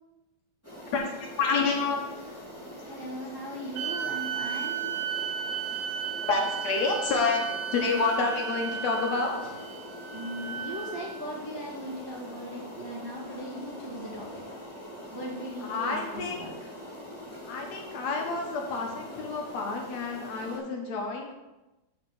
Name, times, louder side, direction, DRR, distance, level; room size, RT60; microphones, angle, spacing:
sound 1, 0.6-20.6, left 1 dB, 5° left, 2.1 m, -43 dB
voice 1, 0.9-2.2 6.3-9.6 15.7-16.7 17.5-21.3, left 4 dB, 70° left, 1 dB, 2.4 m, -29 dB
voice 2, 2.9-4.9 10.1-14.4 15.1-16.5, equal, 20° right, -4 dB, 0.6 m, -38 dB
sound 2, 3.7-11.2, right 8 dB, 85° right, 2.2 m, -34 dB
6.8 x 5.4 x 6.4 m, 1.0 s
omnidirectional pair, 3.3 m